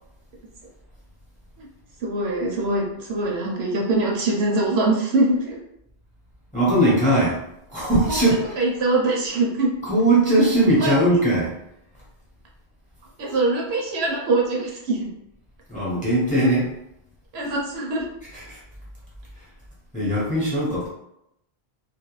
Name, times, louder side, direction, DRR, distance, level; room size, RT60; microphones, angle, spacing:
voice 1, 2.0-5.6 8.1-8.2 8.6-9.7 10.8-10.9 13.2-15.1 17.3-18.0, right 2 dB, 70° right, -2 dB, 0.8 m, -23 dB
voice 2, 6.5-7.4 7.7-8.6 9.8-11.5 15.7-16.7 18.3-18.6 19.9-20.9, right 1 dB, 10° left, -7 dB, 0.7 m, -20 dB
2.3 x 2.2 x 3.0 m, 0.82 s
omnidirectional pair, 1.1 m